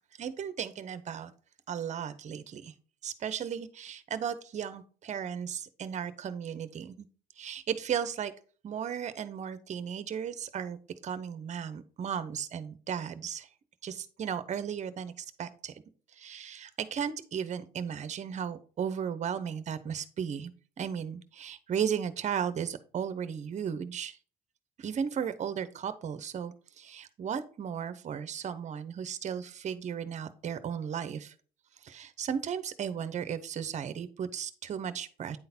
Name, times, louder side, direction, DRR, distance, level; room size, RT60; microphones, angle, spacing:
voice 1, 0.2-1.3 1.7-2.7 3.0-7.1 7.4-8.3 8.6-13.5 13.8-15.7 16.2-20.5 20.8-24.2 24.8-31.3 31.8-35.4, right 8 dB, 45° right, 13 dB, 0.8 m, -35 dB
9.4 x 3.9 x 4.3 m, 0.40 s
cardioid pair, 110°, 17 cm